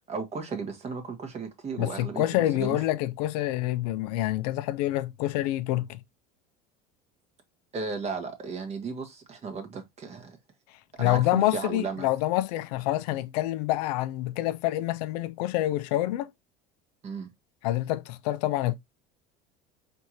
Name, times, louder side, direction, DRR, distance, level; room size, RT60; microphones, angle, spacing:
voice 1, 0.1-2.8 7.7-10.4 11.0-12.1 17.0-17.3, right 4 dB, 35° right, 1.4 m, -35 dB
voice 2, 1.8-6.0 10.7-16.3 17.6-18.7, left 15 dB, 85° left, 0.6 m, -27 dB
4.6 x 3.4 x 2.9 m
supercardioid pair, 115°, 20 cm